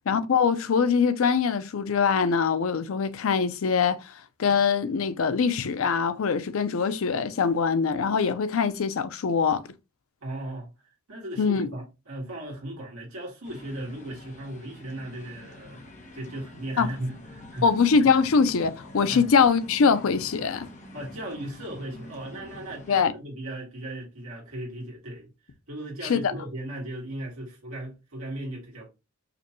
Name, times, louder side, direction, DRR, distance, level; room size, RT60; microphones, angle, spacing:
voice 1, 0.1-4.0 4.4-9.6 11.4-11.7 16.8-16.9 17.6-20.7 22.9-23.1 26.0-26.3, left 5 dB, 65° left, 0.5 m, -23 dB
voice 2, 10.2-10.7 11.1-15.9 16.1-17.7 19.1-19.2 20.9-25.3 25.7-28.9, right 1 dB, 70° right, 1.7 m, -37 dB
sound 1, 13.4-23.0, left 1 dB, 35° left, 0.8 m, -45 dB
5.0 x 2.2 x 2.9 m
head